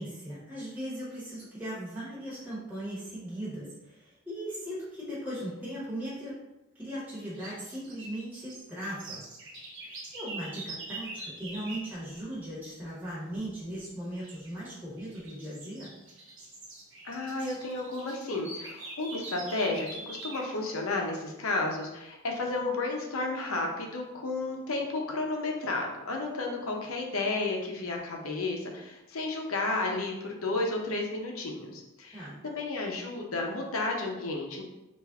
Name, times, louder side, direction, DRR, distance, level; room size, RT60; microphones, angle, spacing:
voice 1, 0.0-6.4 6.7-9.2 9.8-15.9 32.1-32.4, right 1 dB, 10° right, -9 dB, 1.0 m, -38 dB
sound 1, 7.2-11.9 14.1-14.5 15.0-20.5, right 2 dB, 65° right, 1.0 m, -44 dB
voice 2, 17.0-34.6, left 2 dB, 85° left, 1 dB, 0.7 m, -32 dB
3.4 x 2.5 x 3.5 m, 0.97 s
head